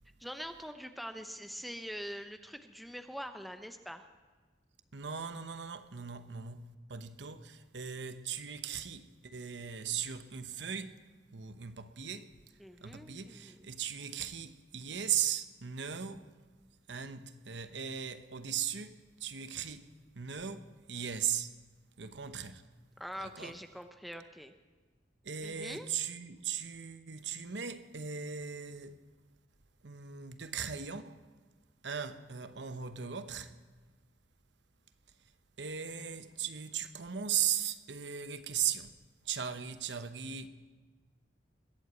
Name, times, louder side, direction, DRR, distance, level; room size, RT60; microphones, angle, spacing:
voice 1, 0.2-4.1 12.6-13.7 23.0-24.5 25.4-25.9, equal, ahead, 0.8 m, -44 dB
voice 2, 4.9-11.0 11.3-12.3 12.8-16.3 16.9-21.5 22.0-22.6 23.2-23.6 25.2-29.0 29.8-31.2 31.8-33.5 35.6-38.9 39.2-40.5, right 8 dB, 80° right, 0.9 m, -38 dB
21.5 x 7.9 x 8.3 m
head